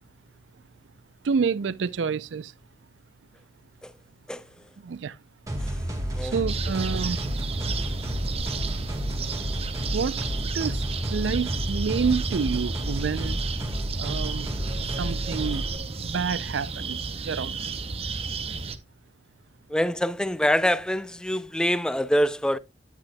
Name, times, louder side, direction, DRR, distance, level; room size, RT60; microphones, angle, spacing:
voice 1, 1.2-2.5 4.8-5.2 6.2-7.2 9.9-10.2 10.5-10.8 11.1-13.4 14.0-14.6 15.0-15.7 16.0-17.6, right 5 dB, 90° right, 0.4 m, -28 dB
sound 1, 5.5-15.8, equal, 20° right, 1.6 m, -31 dB
sound 2, 6.5-18.8, right 4 dB, 35° right, 0.7 m, -33 dB
voice 2, 19.7-22.6, equal, 5° left, 0.4 m, -25 dB
9.2 x 8.9 x 2.2 m
head